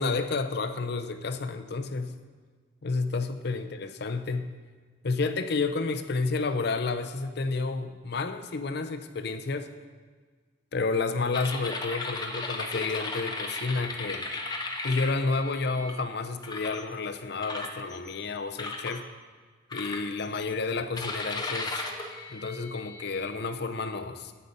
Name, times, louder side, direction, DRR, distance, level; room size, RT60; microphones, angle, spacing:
voice 1, 0.0-2.2 2.8-4.5 5.0-9.7 10.7-14.3 14.8-19.0 19.7-21.8 22.3-24.3, left 3 dB, 55° left, 9 dB, 0.6 m, -30 dB
sound 1, 11.3-15.9 16.4-16.8 17.4-18.1 18.6-19.0 19.7-20.4 21.0-23.3, left 3 dB, 20° left, 0.8 m, -36 dB
9.2 x 5.4 x 7.9 m, 1.5 s
head